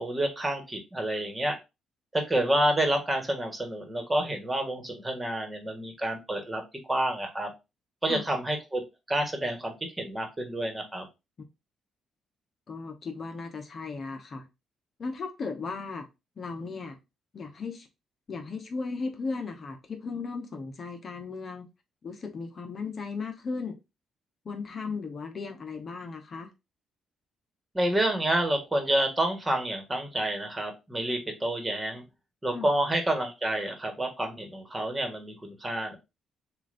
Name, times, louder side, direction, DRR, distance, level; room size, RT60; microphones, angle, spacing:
voice 1, 0.0-1.6 2.1-7.5 8.0-8.8 9.1-11.1 27.7-32.0 32.4-36.0, right 1 dB, 15° right, 1.5 m, -29 dB
voice 2, 12.7-14.5 15.0-16.1 16.4-17.0 17.3-17.9 18.3-21.7 22.0-23.8 24.4-26.5 32.5-32.7, left 4 dB, 45° left, 0.9 m, -36 dB
7.0 x 2.6 x 2.6 m
cardioid pair, 90°, 0 cm